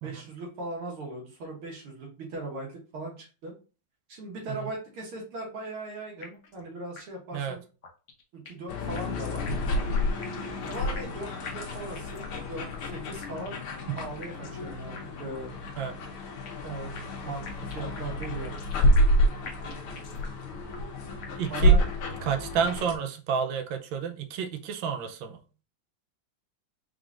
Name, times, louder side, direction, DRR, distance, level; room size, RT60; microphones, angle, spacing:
voice 1, 0.0-3.5 4.1-7.6 8.3-9.4 10.7-13.6 14.0-15.5 16.6-18.6 21.5-21.8, right 2 dB, 90° right, -1 dB, 2.4 m, -39 dB
sound 1, 6.2-6.6 7.0-7.1 7.3-7.4 7.8-8.7 9.0-11.2 11.5-12.4 12.7-12.8 13.2-13.7 14.2-14.6 15.0-15.1 15.3-15.4 15.8-16.7 17.0-19.2 19.5-20.4 20.7-20.8 21.2-21.7, left 5 dB, 55° left, 0.9 m, -45 dB
sound 2, 8.7-22.9, equal, 90° left, 1.8 m, -28 dB
voice 2, 21.4-21.8 22.2-25.4, right 7 dB, 75° right, 6 dB, 1.3 m, -30 dB
4.9 x 3.7 x 2.5 m, 0.35 s
omnidirectional pair, 2.3 m